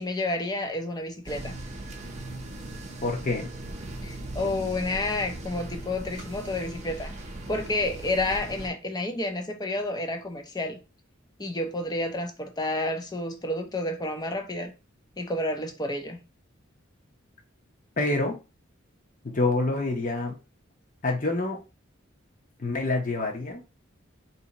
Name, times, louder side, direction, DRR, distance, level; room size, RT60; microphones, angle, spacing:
voice 1, 0.0-1.6 4.0-7.1 7.5-10.8 11.4-14.7 15.2-16.2, left 2 dB, 20° left, 0.6 m, -30 dB
sound 1, 1.2-8.7, right 1 dB, 35° right, 0.7 m, -38 dB
voice 2, 3.0-3.5 18.0-18.4 19.2-20.4 21.0-21.6 22.6-23.6, left 2 dB, 40° left, 0.9 m, -27 dB
2.8 x 2.8 x 4.0 m
head